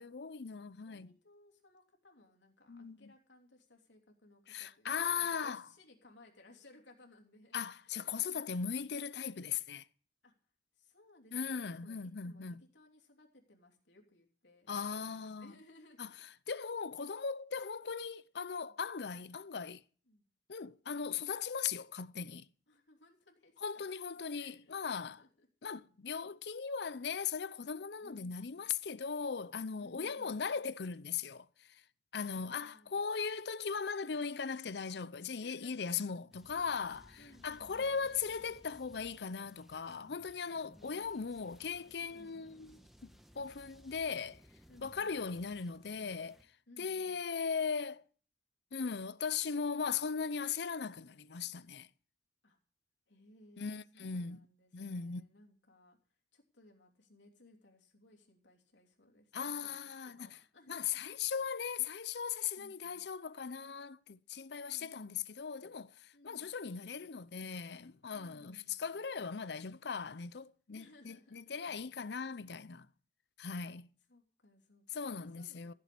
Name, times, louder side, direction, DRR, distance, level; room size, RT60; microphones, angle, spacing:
voice 1, 0.0-1.1 2.7-3.0 4.5-5.6 7.5-9.8 11.3-12.6 14.7-15.5 16.0-16.1 16.5-19.8 20.5-22.5 23.6-25.2 25.6-31.8 32.1-42.7 43.0-43.1 43.4-44.4 44.8-46.4 46.8-48.0 48.7-51.9 53.6-54.4 54.7-55.2 59.3-60.3 60.7-72.9 73.4-73.9 74.9-75.7, left 6 dB, 65° left, 0.6 m, -38 dB
voice 2, 0.8-8.7 10.2-10.3 10.7-16.3 18.6-18.8 20.1-20.2 22.7-23.8 24.3-25.5 28.0-28.6 29.8-30.4 32.3-33.0 35.4-36.1 36.9-38.0 40.5-41.6 42.1-42.4 44.7-45.2 46.7-47.2 52.4-52.6 53.1-56.0 56.3-59.3 59.6-59.8 60.0-61.2 62.6-63.1 64.6-65.3 66.1-66.5 68.1-69.0 70.7-71.6 74.1-75.7, left 1 dB, 85° left, 3.1 m, -62 dB
sound 1, 36.3-46.4, equal, ahead, 1.4 m, -61 dB
15.5 x 7.5 x 8.5 m
head